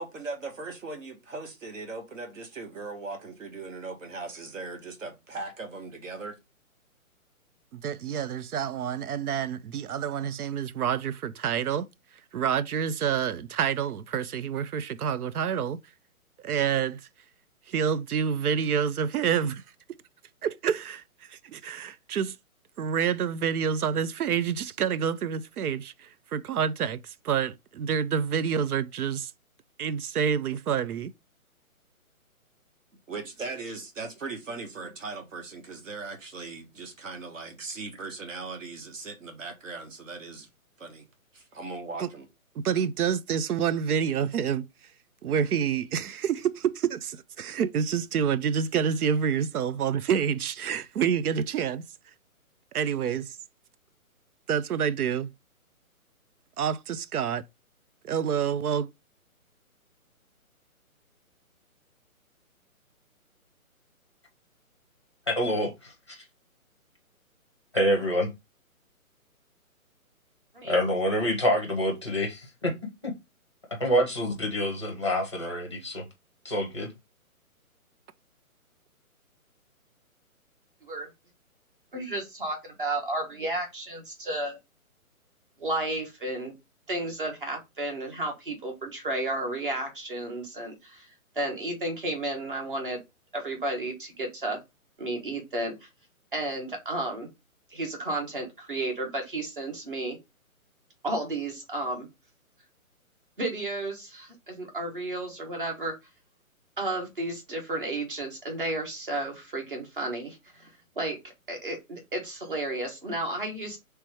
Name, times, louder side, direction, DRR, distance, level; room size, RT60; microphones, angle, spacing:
voice 1, 0.0-6.4 33.1-40.5 40.8-41.0 41.3-42.3, right 3 dB, 60° right, 1.4 m, -39 dB
voice 2, 7.7-11.9 12.3-15.8 16.4-17.1 17.7-19.6 20.4-21.0 21.3-22.4 22.8-29.3 29.8-31.1 42.0-42.1 42.6-44.7 45.2-51.8 52.7-53.4 54.5-55.3 56.6-57.5 58.0-58.9, right 7 dB, 90° right, 0.6 m, -28 dB
voice 3, 65.3-66.2 67.7-68.3 70.6-72.7 73.0-73.1 73.8-76.0 76.4-76.9, equal, 20° left, 0.6 m, -27 dB
voice 4, 70.5-70.9 80.8-81.1 81.9-84.6 85.6-86.5 86.9-91.1 91.3-93.0 93.3-94.6 95.0-95.9 96.3-97.3 97.7-100.2 101.0-102.1 103.4-105.9 106.8-110.7 110.9-111.2 111.5-113.8, right 2 dB, 35° right, 1.3 m, -32 dB
3.3 x 3.0 x 4.7 m
hypercardioid pair, 180°, 43 cm